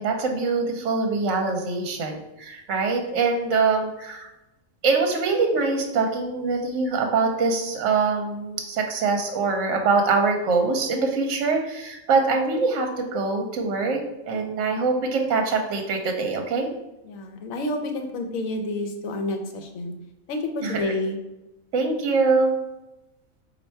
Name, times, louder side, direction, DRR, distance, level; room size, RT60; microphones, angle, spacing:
voice 1, 0.0-4.3 4.8-16.7 20.6-20.9 21.7-22.5, right 4 dB, 70° right, 3 dB, 0.9 m, -24 dB
voice 2, 17.0-19.9 20.3-21.2, left 2 dB, 80° left, 5 dB, 1.1 m, -29 dB
4.3 x 2.6 x 4.4 m, 0.94 s
omnidirectional pair, 1.4 m